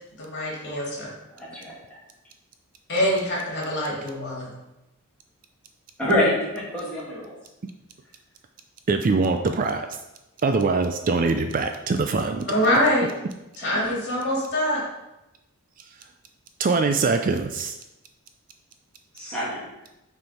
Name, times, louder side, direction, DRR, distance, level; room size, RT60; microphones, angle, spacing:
voice 1, 0.2-1.1 2.9-4.5 12.5-13.1 13.6-14.8, equal, 50° left, -5 dB, 2.5 m, -24 dB
voice 2, 1.4-1.7 6.0-7.3 13.6-13.8 19.1-19.7, left 1 dB, 5° left, -10 dB, 2.6 m, -26 dB
voice 3, 8.9-9.9 10.4-12.5 16.6-17.8, right 4 dB, 40° right, 6 dB, 0.4 m, -23 dB
6.4 x 4.4 x 4.3 m, 0.93 s
head